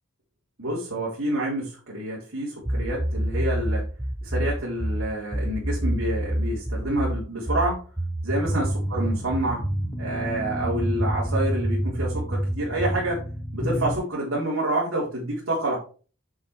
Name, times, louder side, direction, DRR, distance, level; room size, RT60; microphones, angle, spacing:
voice 1, 0.6-3.8 4.2-7.8 8.2-9.6 10.0-13.2 13.5-15.8, right 1 dB, 70° right, -6 dB, 4.3 m, -28 dB
sound 1, 2.7-9.9 10.6-13.1, right 1 dB, 10° right, 0.5 m, -27 dB
sound 2, 8.4-14.0, equal, 10° left, 1.0 m, -34 dB
9.9 x 7.5 x 3.4 m, 0.38 s
head